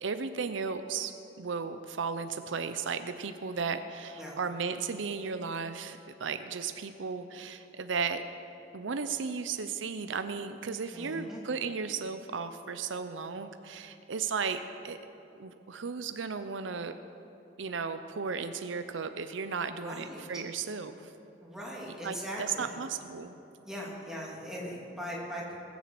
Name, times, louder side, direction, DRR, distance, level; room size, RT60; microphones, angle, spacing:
voice 1, 0.0-8.2 8.7-15.0 15.4-17.0 17.6-21.1 22.0-23.3, right 5 dB, 75° right, 10 dB, 0.6 m, -35 dB
voice 2, 10.9-11.4 19.7-20.3 21.4-22.8 23.6-25.6, equal, 5° right, -4 dB, 2.8 m, -40 dB
20.5 x 7.2 x 7.6 m, 2.9 s
head